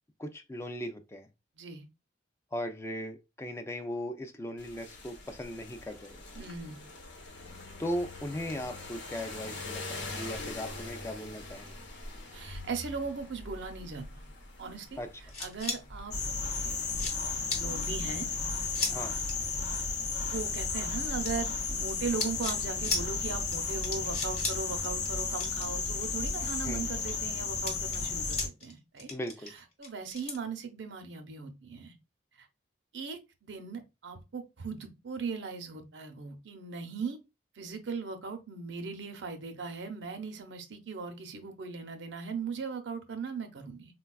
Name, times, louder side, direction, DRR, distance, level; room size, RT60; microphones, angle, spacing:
voice 1, 0.2-1.3 2.5-6.2 7.8-11.7 15.0-15.1 18.9-19.1 26.6-26.9 29.1-29.5, equal, 15° left, 0.3 m, -38 dB
sound 1, 4.6-17.1, left 2 dB, 85° left, 0.9 m, -44 dB
voice 2, 6.4-6.8 12.3-14.2 14.6-16.1 17.5-18.3 20.2-29.1 29.5-31.9 32.4-32.5 32.9-37.2 37.6-43.9, right 5 dB, 80° right, 0.6 m, -38 dB
sound 2, 15.3-15.8 16.4-16.5 16.9-17.2 17.5-17.6 18.7-18.9 19.2-19.3 21.2-21.9 22.2-22.6 22.8-23.0 23.5-23.6 23.8-24.6 24.8-25.1 25.4-26.4 26.8-27.1 27.6-28.7 29.0-30.4, left 3 dB, 35° left, 0.9 m, -35 dB
sound 3, 16.1-28.5, left 4 dB, 65° left, 0.5 m, -33 dB
4.0 x 2.2 x 2.2 m
head